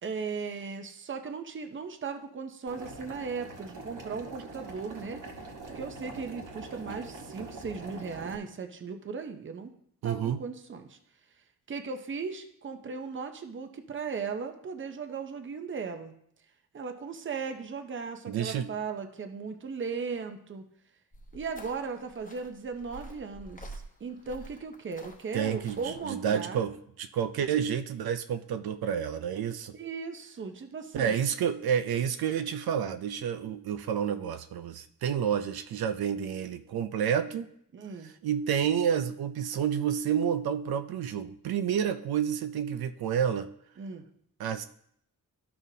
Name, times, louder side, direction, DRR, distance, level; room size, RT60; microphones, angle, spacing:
voice 1, 0.0-5.2 5.7-9.7 10.0-11.0 11.7-16.1 16.7-20.7 21.3-26.6 29.7-31.2 37.7-38.1 43.8-44.1, right 5 dB, 35° right, 7 dB, 0.7 m, -37 dB
Boiling, 2.7-8.4, right 3 dB, 60° right, 1.4 m, -44 dB
voice 2, 10.0-10.4 18.3-18.7 25.3-29.8 30.9-37.5 38.2-43.5 44.4-44.7, right 8 dB, 85° right, 10 dB, 0.5 m, -29 dB
sound 1, 21.1-26.3, right 1 dB, 20° left, 0.9 m, -48 dB
13.0 x 5.5 x 2.8 m, 0.69 s
wide cardioid pair, 170°, 36 cm